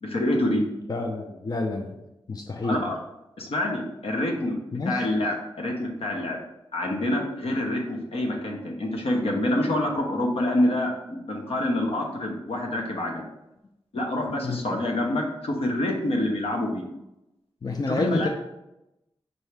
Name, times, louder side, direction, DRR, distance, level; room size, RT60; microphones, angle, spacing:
voice 1, 0.0-0.6 2.6-3.0 3.4-6.4 6.7-13.3 13.9-16.8 17.9-18.3, left 1 dB, 70° left, 1 dB, 0.8 m, -27 dB
voice 2, 0.9-1.9 2.3-2.8 4.7-5.1 14.4-14.6 17.6-18.3, left 2 dB, 40° left, 2 dB, 0.5 m, -28 dB
4.7 x 2.7 x 3.3 m, 0.90 s
cardioid pair, 65°, 10 cm